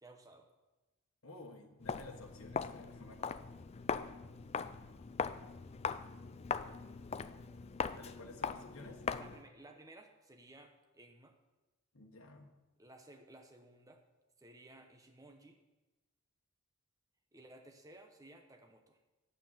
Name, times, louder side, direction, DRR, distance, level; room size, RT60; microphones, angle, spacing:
voice 1, 0.0-0.5 6.7-6.8 9.1-11.4 12.8-14.0 14.4-15.6 17.3-19.0, right 2 dB, 15° right, 4 dB, 0.8 m, -57 dB
voice 2, 1.2-3.4 7.9-9.0 11.9-12.5, left 2 dB, 65° left, 1 dB, 1.4 m, -53 dB
Walk footsteps, 1.8-9.5, left 5 dB, 30° left, 0.3 m, -40 dB
9.1 x 7.6 x 7.6 m, 1.1 s
head